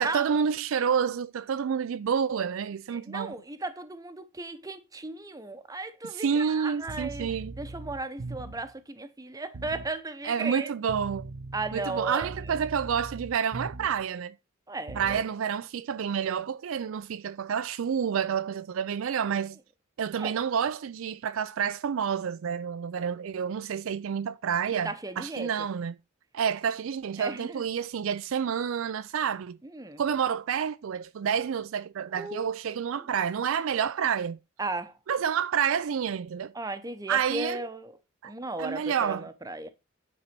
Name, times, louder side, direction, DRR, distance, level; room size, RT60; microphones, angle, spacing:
voice 1, 0.0-3.3 6.1-7.5 10.2-11.3 11.7-14.3 14.9-19.6 20.0-26.0 26.3-29.6 30.0-34.4 35.1-36.5 37.1-37.7 38.2-38.3 38.6-39.3, right 7 dB, 65° right, 0.4 m, -29 dB
voice 2, 2.9-10.7 11.5-12.3 14.7-15.2 20.2-20.4 24.8-25.7 27.2-27.6 29.7-30.0 32.1-32.5 34.6-35.0 36.5-37.9 38.2-39.7, right 2 dB, 15° right, 0.8 m, -36 dB
sound 1, 6.8-8.7 9.5-9.9 10.9-14.1 14.9-15.3, right 2 dB, 80° right, 0.8 m, -41 dB
9.8 x 4.0 x 5.9 m
head